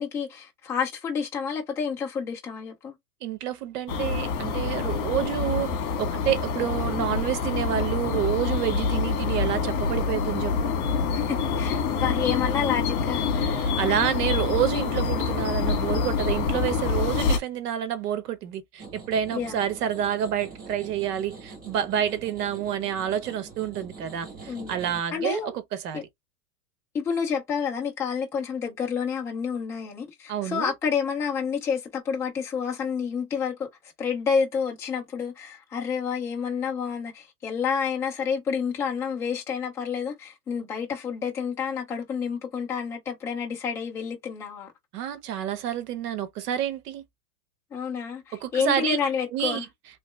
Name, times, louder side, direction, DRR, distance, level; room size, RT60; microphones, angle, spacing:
voice 1, 0.0-2.9 11.1-13.6 19.3-19.6 24.5-24.8 25.1-25.5 25.9-26.0 26.9-33.7 34.0-44.7 47.7-49.6, left 6 dB, 5° left, 0.3 m, -29 dB
voice 2, 3.2-5.7 6.0-10.7 13.6-26.1 30.3-30.7 44.9-47.0 48.3-49.0 49.3-49.7, right 10 dB, 75° right, 1.0 m, -28 dB
sound 1, 3.9-17.4, left 5 dB, 40° left, 1.6 m, -26 dB
sound 2, 18.8-25.0, right 4 dB, 20° right, 1.1 m, -44 dB
3.2 x 3.0 x 3.1 m
supercardioid pair, 140°, 46 cm